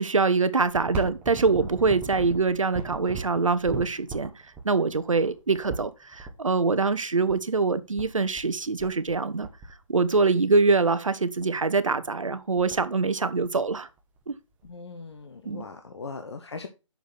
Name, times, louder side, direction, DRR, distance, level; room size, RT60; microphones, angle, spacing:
voice 1, 0.0-4.3 4.6-9.5 9.9-13.9 14.3-14.4 15.4-15.6, right 4 dB, 75° right, 1.0 m, -24 dB
sound 1, 0.6-6.3 7.3-7.4 7.6-7.7 8.0-8.5 8.8-9.2 9.4-10.3 10.9-11.0 11.4-11.7 12.1-12.2 12.3-12.9 13.4-14.2 14.6-14.7 15.6-15.7, right 3 dB, 10° right, 1.1 m, -38 dB
voice 2, 14.6-16.7, left 4 dB, 55° left, 1.0 m, -39 dB
6.6 x 5.1 x 5.9 m
figure-of-eight pair, 150°, 17 cm